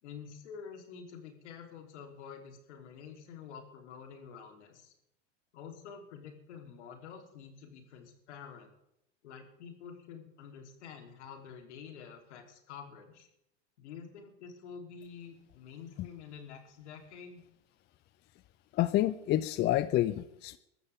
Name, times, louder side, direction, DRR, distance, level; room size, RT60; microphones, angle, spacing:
voice 1, 0.0-4.9 5.5-8.7 9.2-13.3 13.8-17.4, left 6 dB, 75° left, 3 dB, 3.5 m, -48 dB
voice 2, 18.7-20.6, left 14 dB, 30° left, 15 dB, 0.5 m, -28 dB
23.0 x 13.0 x 3.6 m, 0.80 s
hypercardioid pair, 105°, 35 cm